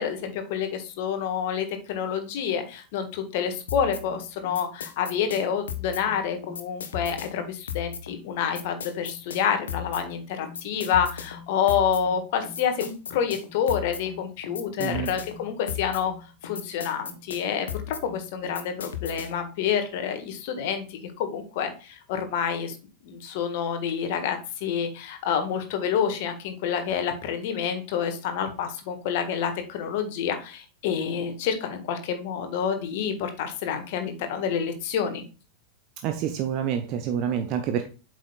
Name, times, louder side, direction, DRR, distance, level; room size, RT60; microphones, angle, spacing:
voice 1, 0.0-16.1 16.4-22.7 23.0-35.2, left 7 dB, 50° left, 1.6 m, -28 dB
sound 1, 3.7-19.5, left 8 dB, 65° left, 1.0 m, -37 dB
voice 2, 36.0-37.9, right 9 dB, 40° right, 0.8 m, -27 dB
8.1 x 6.2 x 2.3 m
figure-of-eight pair, 90°, 0 cm